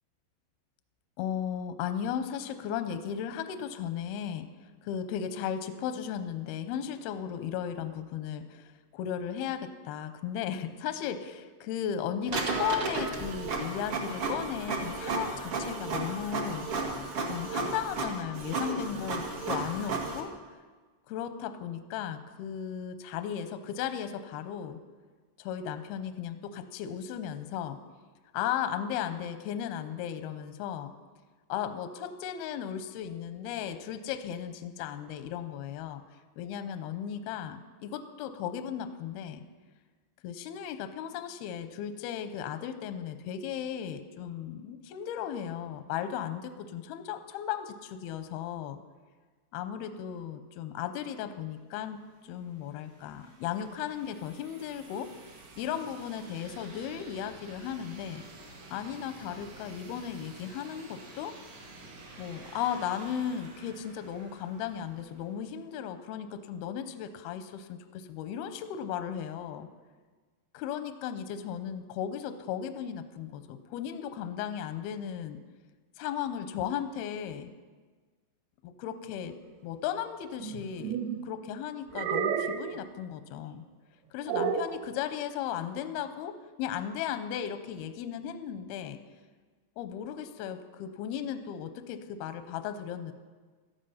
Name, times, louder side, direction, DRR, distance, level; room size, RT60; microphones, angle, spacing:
voice 1, 1.2-4.5 4.8-16.7 17.3-20.3 21.1-24.8 25.4-27.8 28.3-30.9 31.5-36.0 36.4-39.4 40.2-48.8 49.5-55.1 55.6-58.3 58.7-61.3 62.2-69.7 70.5-75.4 76.0-77.5 78.6-79.4 79.6-81.0 81.2-83.7 84.1-89.0 89.8-93.1, left 9 dB, 80° left, 9 dB, 2.3 m, -36 dB
Printer, 12.3-20.2, right 3 dB, 50° right, 1.8 m, -33 dB
sound 1, 52.0-65.7, right 2 dB, 85° right, 5.2 m, -51 dB
sound 2, 80.4-81.2 81.9-82.8 84.3-84.8, right 7 dB, 70° right, 2.6 m, -31 dB
16.5 x 13.0 x 5.7 m, 1.4 s
omnidirectional pair, 5.3 m